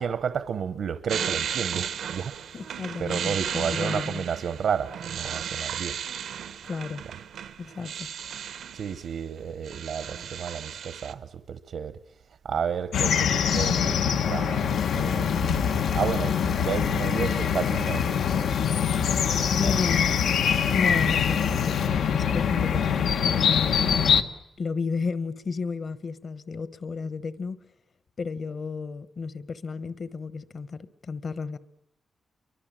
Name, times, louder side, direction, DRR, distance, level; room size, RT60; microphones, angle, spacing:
voice 1, 0.0-2.4 3.0-6.0 8.7-12.0 12.4-18.4 19.6-19.7, right 7 dB, 65° right, 0.9 m, -32 dB
sound 1, 1.1-9.1 9.4-11.1, right 8 dB, 90° right, 1.2 m, -34 dB
voice 2, 2.5-4.2 6.6-7.0 7.6-8.1 19.5-20.2 20.7-24.1 24.6-27.6 28.2-31.6, left 4 dB, 40° left, 1.0 m, -33 dB
sound 2, 12.9-24.2, left 7 dB, 90° left, 1.2 m, -24 dB
Water tap faucet / Liquid, 14.5-21.9, left 7 dB, 60° left, 2.2 m, -44 dB
29.5 x 23.5 x 7.5 m
wide cardioid pair, 160°, 0 cm